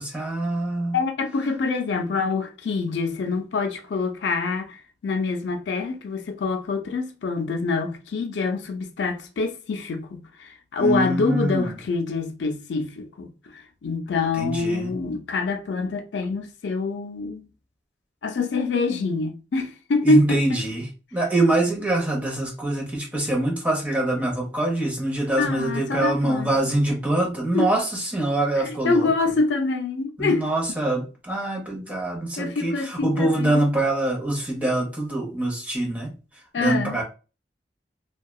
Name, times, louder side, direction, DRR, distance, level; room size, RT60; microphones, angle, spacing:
voice 1, 0.0-1.0 10.8-11.7 14.4-14.9 20.0-29.1 30.2-36.1 36.6-37.0, right 1 dB, 10° right, 0.8 m, -24 dB
voice 2, 0.9-17.5 18.2-20.6 25.4-26.5 27.5-27.7 28.6-30.5 32.4-33.7 36.5-37.0, left 3 dB, 75° left, 0.4 m, -25 dB
2.7 x 2.2 x 2.3 m
head